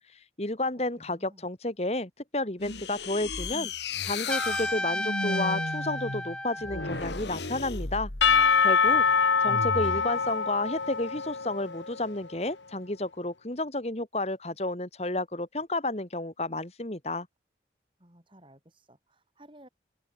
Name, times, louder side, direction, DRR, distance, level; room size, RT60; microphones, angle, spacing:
voice 1, 0.4-3.7 4.0-17.3, left 2 dB, 35° left, 2.0 m, -31 dB
voice 2, 1.0-1.5 18.0-19.7, right 1 dB, 30° right, 5.8 m, -55 dB
sound 1, 2.6-8.5 9.4-10.1, left 3 dB, 75° left, 2.7 m, -35 dB
Trumpet, 4.3-7.1, left 1 dB, 5° left, 0.9 m, -32 dB
Percussion / Church bell, 8.2-12.1, left 5 dB, 90° left, 1.5 m, -24 dB
open air
head